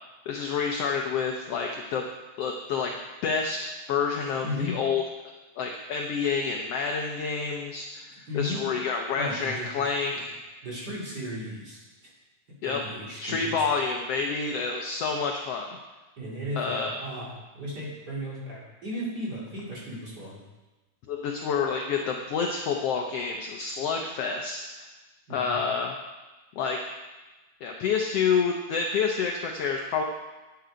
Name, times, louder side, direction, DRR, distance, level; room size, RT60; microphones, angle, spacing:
voice 1, 0.3-2.1 2.4-2.9 3.2-5.0 5.6-8.1 8.3-10.3 12.6-12.8 13.2-15.7 16.5-17.0 21.1-24.9 25.3-25.9 26.6-26.8 27.6-30.0, left 5 dB, 70° left, 2 dB, 1.5 m, -28 dB
voice 2, 8.3-8.6 9.2-9.7 10.6-12.1 12.6-13.7 16.2-17.3 17.5-20.4 25.3-25.6, left 1 dB, 35° right, -6 dB, 3.0 m, -35 dB
9.5 x 9.3 x 5.1 m, 1.2 s
omnidirectional pair, 3.5 m